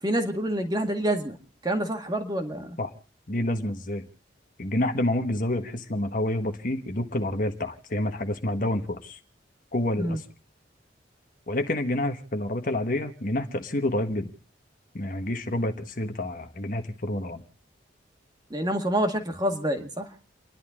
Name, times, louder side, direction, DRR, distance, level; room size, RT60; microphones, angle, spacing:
voice 1, 0.0-1.4 1.6-2.8 10.0-10.2 18.5-20.1, right 1 dB, 20° right, 4 dB, 1.8 m, -27 dB
voice 2, 3.3-4.0 4.6-9.2 9.7-10.2 11.5-14.3 14.9-17.4, left 1 dB, 45° left, 7 dB, 1.3 m, -28 dB
30.0 x 11.5 x 3.7 m, 0.36 s
head